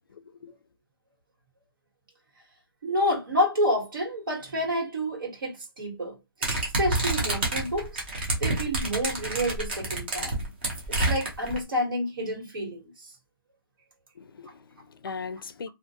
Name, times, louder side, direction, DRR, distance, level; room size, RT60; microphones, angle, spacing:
voice 1, 0.1-0.5 14.2-15.7, left 5 dB, 65° left, 0.4 m, -39 dB
voice 2, 2.8-6.1 6.8-8.0 8.4-10.4 10.9-12.9, equal, 65° right, 1.5 m, -28 dB
sound 1, 6.4-11.6, right 2 dB, 25° right, 0.7 m, -28 dB
2.4 x 2.2 x 2.8 m
hypercardioid pair, 170°, 12 cm